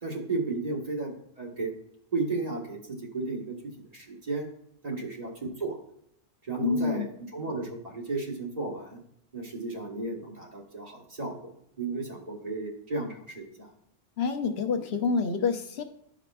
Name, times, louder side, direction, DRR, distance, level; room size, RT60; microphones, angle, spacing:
voice 1, 0.0-1.7 2.1-3.5 3.9-4.5 4.8-5.8 6.4-7.1 7.3-9.0 9.3-11.4 11.8-13.7, right 3 dB, 40° right, -2 dB, 1.3 m, -33 dB
voice 2, 6.6-7.1 14.2-15.8, left 5 dB, 75° left, 6 dB, 0.9 m, -27 dB
12.5 x 4.9 x 2.3 m, 0.71 s
omnidirectional pair, 1.1 m